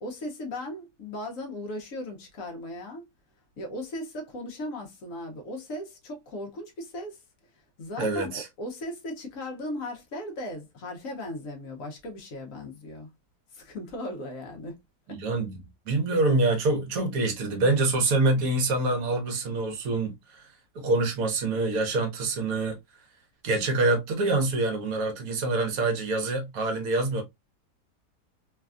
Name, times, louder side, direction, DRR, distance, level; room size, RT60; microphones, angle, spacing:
voice 1, 0.0-3.0 3.6-7.2 7.8-13.1 13.5-14.7 15.1-15.2, left 1 dB, 60° left, 1.1 m, -37 dB
voice 2, 8.0-8.5 15.1-15.6 15.9-20.5 20.7-22.8 23.4-27.2, right 2 dB, 65° right, 1.2 m, -26 dB
3.2 x 2.3 x 2.4 m
omnidirectional pair, 1.8 m